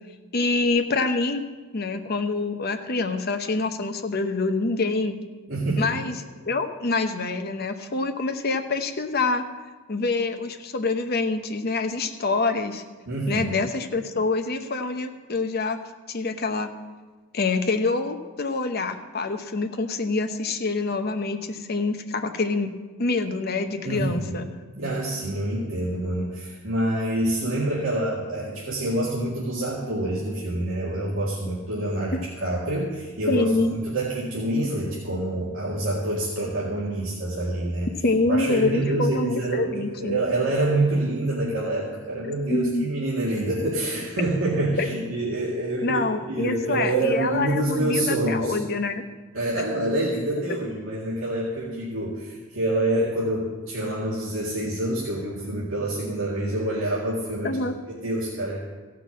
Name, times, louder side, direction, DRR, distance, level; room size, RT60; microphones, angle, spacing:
voice 1, 0.3-1.4 1.7-5.2 5.8-6.1 6.4-9.4 9.9-12.8 13.3-15.8 16.1-16.7 17.3-22.7 23.0-24.5 33.3-33.8 38.0-40.2 42.5-42.9 44.8-44.9 45.8-49.0 57.4-57.7, left 3 dB, 50° left, 7 dB, 0.8 m, -26 dB
voice 2, 5.5-5.9 13.1-13.5 23.8-24.5 24.7-33.5 33.7-37.9 38.3-48.6 49.3-57.6 58.0-58.6, right 1 dB, 80° right, -6 dB, 2.1 m, -26 dB
15.0 x 5.9 x 7.3 m, 1.3 s
head